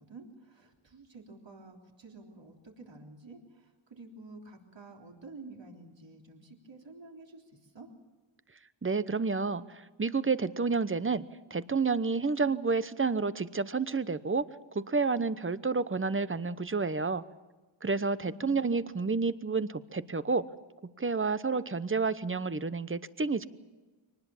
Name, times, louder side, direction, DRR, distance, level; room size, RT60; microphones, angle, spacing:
voice 1, 0.0-7.4 7.7-7.9 18.2-18.8, right 3 dB, 60° right, 2 dB, 3.7 m, -50 dB
voice 2, 8.8-11.2 11.5-14.4 14.7-17.2 17.8-20.4 21.0-23.5, right 4 dB, 25° right, 15 dB, 0.9 m, -30 dB
24.0 x 19.5 x 7.2 m, 1.3 s
wide cardioid pair, 70°, 49 cm